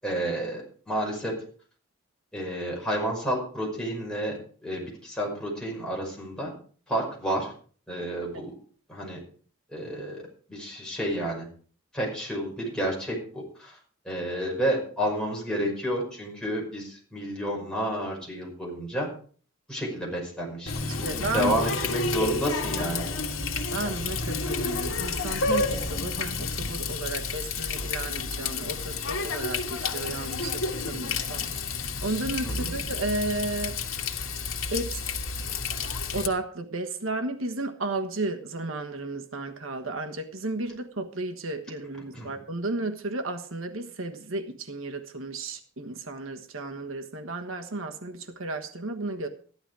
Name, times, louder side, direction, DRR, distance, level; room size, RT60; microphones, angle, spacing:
voice 1, 0.0-1.4 2.3-6.5 6.9-7.5 7.9-8.5 8.9-9.2 9.7-11.5 11.9-13.8 14.0-19.1 19.7-23.0 32.4-32.7 42.1-42.3, right 1 dB, 5° left, 5.7 m, -30 dB
Water tap faucet, 20.7-36.3, left 4 dB, 85° left, 1.6 m, -30 dB
voice 2, 20.8-21.6 23.7-31.5 32.0-33.7 34.7-35.0 36.1-49.3, right 2 dB, 80° right, 1.3 m, -33 dB
14.0 x 11.5 x 4.8 m
head